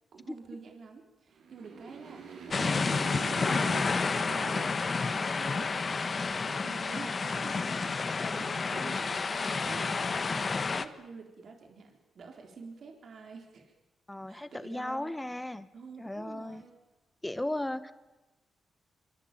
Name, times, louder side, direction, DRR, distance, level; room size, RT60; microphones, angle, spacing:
voice 1, 0.1-5.9 6.2-13.7 14.3-15.2 15.7-16.8, right 4 dB, 60° right, 3 dB, 4.0 m, -48 dB
Motorcycle, 1.3-6.0, right 5 dB, 80° right, 6.1 m, -45 dB
sound 1, 2.5-10.9, left 4 dB, 40° left, 1.5 m, -30 dB
voice 2, 14.1-15.7 16.0-16.6 17.2-17.9, left 1 dB, 10° left, 12 dB, 1.8 m, -36 dB
25.0 x 24.5 x 9.1 m, 1.1 s
cardioid pair, 80°, 0 cm